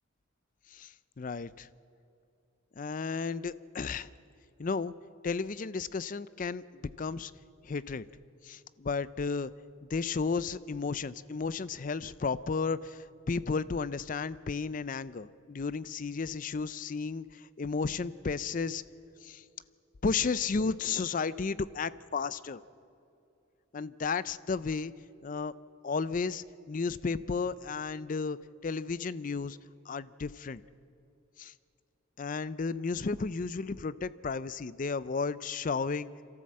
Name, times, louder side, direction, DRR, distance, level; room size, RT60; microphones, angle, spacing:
voice 1, 0.7-1.7 2.8-4.1 4.6-4.9 5.2-7.3 7.6-8.0 8.4-9.5 9.9-18.8 19.2-19.4 20.0-22.6 23.7-24.9 25.2-25.5 25.8-28.4 28.6-29.6 29.9-30.6 31.4-31.5 32.2-36.1, left 4 dB, 40° left, 17 dB, 0.4 m, -33 dB
25.0 x 13.5 x 7.6 m, 2.7 s
head